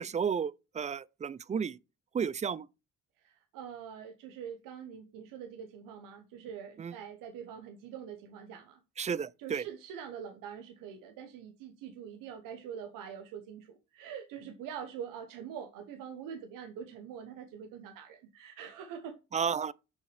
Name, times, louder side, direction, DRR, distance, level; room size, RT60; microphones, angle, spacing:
voice 1, 0.0-1.8 2.1-2.7 6.8-6.9 9.0-9.6 19.3-19.7, right 7 dB, 25° right, 0.3 m, -32 dB
voice 2, 3.2-8.8 9.4-19.2, right 8 dB, 85° right, 0.9 m, -44 dB
6.2 x 5.5 x 3.2 m
supercardioid pair, 65°, 32 cm